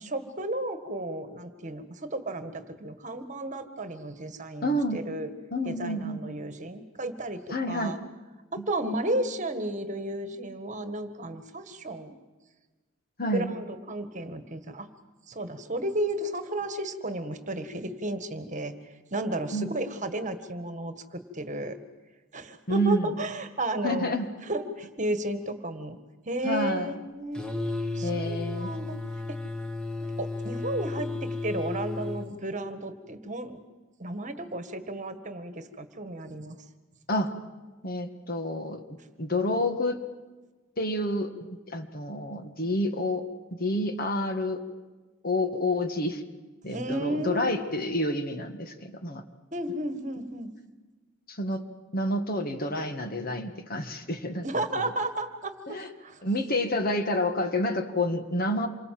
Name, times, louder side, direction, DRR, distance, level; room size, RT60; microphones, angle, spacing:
voice 1, 0.0-5.3 5.6-8.0 8.5-12.2 13.3-14.9 15.3-18.7 19.1-21.8 22.3-24.2 24.5-26.0 26.3-27.4 28.0-29.0 30.2-31.1 31.4-33.6 34.0-36.6 46.7-47.6 49.5-50.5 54.4-56.2, right 1 dB, 35° right, 9 dB, 1.8 m, -33 dB
voice 2, 4.6-5.0 5.5-6.2 7.5-8.0 8.6-8.7 13.2-13.5 19.5-19.7 22.7-23.1 23.8-24.3 26.4-26.9 28.0-28.7 37.1-37.4 37.8-38.8 39.2-40.0 40.8-43.3 43.6-44.6 45.2-46.2 46.6-49.2 51.3-51.6 51.9-54.5 54.8-54.9 55.7-55.9 56.2-58.7, left 1 dB, 45° left, 7 dB, 1.9 m, -29 dB
sound 1, 27.3-32.3, left 2 dB, 5° left, 1.8 m, -33 dB
27.5 x 23.5 x 7.7 m, 1.2 s
head